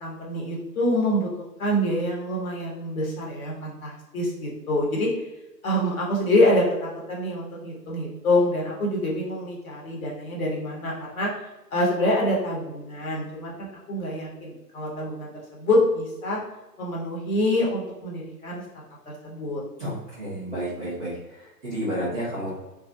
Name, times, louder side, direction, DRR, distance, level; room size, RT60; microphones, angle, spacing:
voice 1, 0.0-1.3 1.6-5.1 5.6-11.3 11.7-16.4 16.8-19.6, left 1 dB, 55° left, -3 dB, 1.1 m, -26 dB
voice 2, 19.8-22.5, right 1 dB, 5° right, -10 dB, 0.5 m, -31 dB
2.3 x 2.3 x 2.7 m, 1.0 s
figure-of-eight pair, 130°, 49 cm